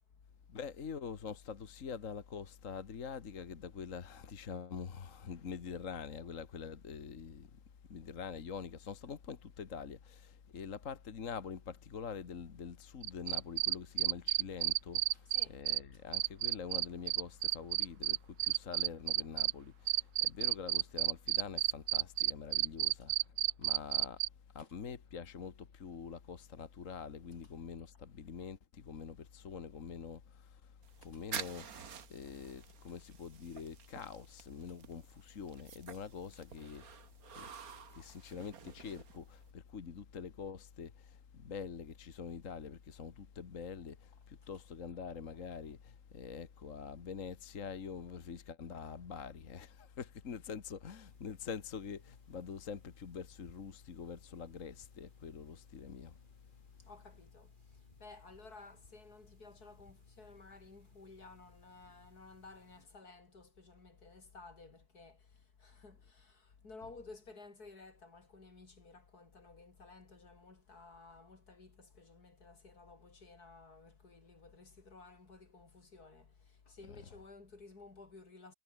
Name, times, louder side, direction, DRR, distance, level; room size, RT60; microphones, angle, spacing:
voice 1, 0.5-7.6 7.9-23.3 23.6-24.2 24.5-31.8 32.1-37.0 37.3-56.2, left 6 dB, 55° left, 1.9 m, -45 dB
sound 1, 13.0-15.8 16.1-19.5 19.9-24.3, right 15 dB, 90° right, 1.1 m, -31 dB
voice 2, 15.1-15.6 15.9-16.0 23.5-23.7 24.6-24.7 30.9-31.2 32.7-32.9 34.7-34.8 44.4-44.5 56.8-78.5, left 3 dB, 85° left, 4.5 m, -56 dB
Lighting the cigarette in the forest, 30.8-39.5, right 7 dB, 70° right, 1.9 m, -49 dB
sound 2, 51.1-62.9, left 1 dB, 30° left, 7.6 m, -67 dB
omnidirectional pair, 1.6 m